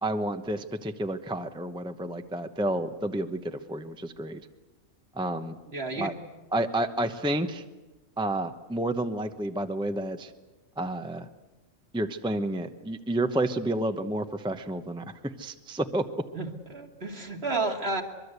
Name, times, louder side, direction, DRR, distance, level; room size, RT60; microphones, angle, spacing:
voice 1, 0.0-4.4 5.2-5.6 6.0-6.1 6.5-7.6 8.2-10.3 10.8-11.3 11.9-16.1, right 1 dB, 5° right, 7 dB, 0.8 m, -30 dB
voice 2, 5.7-6.1 16.3-18.0, right 3 dB, 50° right, 3 dB, 2.6 m, -31 dB
24.0 x 22.5 x 8.2 m, 1.1 s
omnidirectional pair, 1.3 m